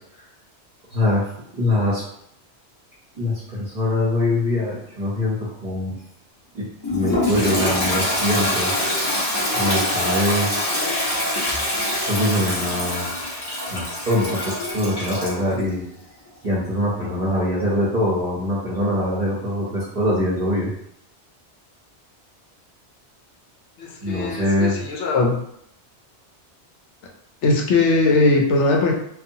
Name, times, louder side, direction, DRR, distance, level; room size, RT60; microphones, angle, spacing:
voice 1, 0.9-1.2 1.5-2.0 3.1-5.9 6.5-9.1 9.4-10.8 12.1-13.2 13.7-15.8 16.4-20.7 24.0-24.8, left 1 dB, 40° right, -8 dB, 0.8 m, -23 dB
Toilet flush, 6.8-15.4, left 1 dB, 25° left, 0.6 m, -24 dB
voice 2, 23.8-25.4 27.4-28.9, left 3 dB, 80° left, 1 dB, 0.9 m, -19 dB
2.7 x 2.4 x 2.7 m, 0.73 s
omnidirectional pair, 1.2 m